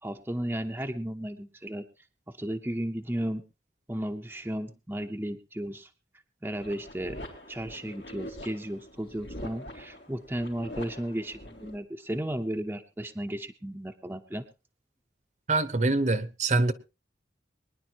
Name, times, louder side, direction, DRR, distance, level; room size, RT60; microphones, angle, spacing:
voice 1, 0.0-1.8 2.3-3.4 3.9-5.9 6.4-7.2 7.5-14.4, right 1 dB, 10° right, 0.7 m, -34 dB
sound 1, 6.6-11.8, left 1 dB, 85° left, 4.0 m, -44 dB
voice 2, 15.5-16.7, right 2 dB, 40° right, 0.9 m, -24 dB
23.5 x 10.5 x 2.9 m
head